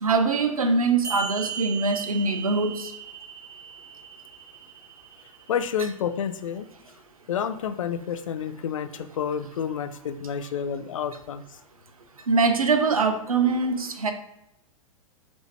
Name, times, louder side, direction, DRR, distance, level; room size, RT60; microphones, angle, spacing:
voice 1, 0.0-2.9 12.3-14.1, right 4 dB, 80° right, 8 dB, 0.6 m, -23 dB
sound 1, 1.0-6.1, right 6 dB, 20° right, 0.6 m, -38 dB
voice 2, 5.5-6.7 7.3-11.4, left 8 dB, 65° left, 9 dB, 0.4 m, -29 dB
4.3 x 2.7 x 3.1 m, 0.82 s
figure-of-eight pair, 100°, 18 cm